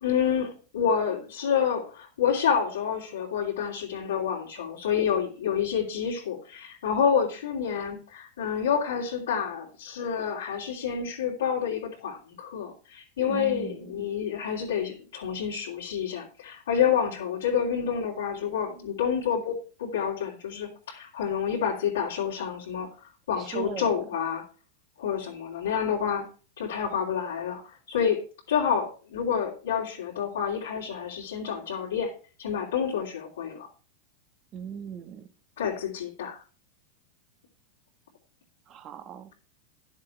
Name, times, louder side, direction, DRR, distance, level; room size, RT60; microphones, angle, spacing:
voice 1, 0.0-22.9 23.3-24.4 25.0-26.2 26.6-32.1 32.4-33.7 35.6-36.4, left 7 dB, 80° left, 3.2 m, -28 dB
voice 2, 13.3-14.1 23.4-24.2 34.5-35.3 38.7-39.3, right 8 dB, 35° right, 1.2 m, -39 dB
11.0 x 7.4 x 4.5 m
hypercardioid pair, 110°, 0 cm